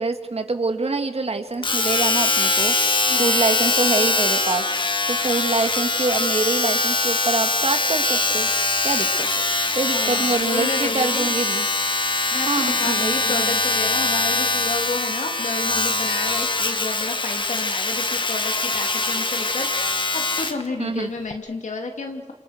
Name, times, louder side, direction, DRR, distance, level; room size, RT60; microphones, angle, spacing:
voice 1, 0.0-2.7 3.2-4.7 5.1-8.5 8.8-9.3 9.7-11.7 12.5-13.6 20.8-21.1, right 3 dB, 55° right, 6 dB, 2.5 m, -25 dB
Domestic sounds home sounds, 1.6-20.6 21.3-21.4, left 3 dB, 40° left, 1.6 m, -22 dB
voice 2, 9.9-11.3 12.3-22.3, left 3 dB, 90° left, 3 dB, 2.8 m, -31 dB
28.5 x 27.5 x 6.7 m, 1.4 s
wide cardioid pair, 90°, 12 cm